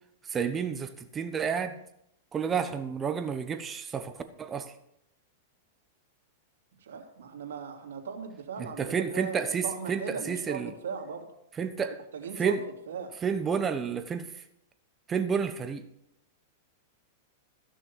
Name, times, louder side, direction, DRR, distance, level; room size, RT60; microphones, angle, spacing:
voice 1, 0.3-1.7 2.3-4.1 4.4-4.7 8.6-10.7 11.6-11.9 12.4-12.6 13.2-14.3 15.1-15.8, right 6 dB, 20° right, 1.0 m, -30 dB
voice 2, 6.8-11.3 12.1-12.6 12.9-13.1, right 6 dB, 90° right, 2.8 m, -38 dB
15.0 x 6.4 x 7.0 m
supercardioid pair, 140°, 0 cm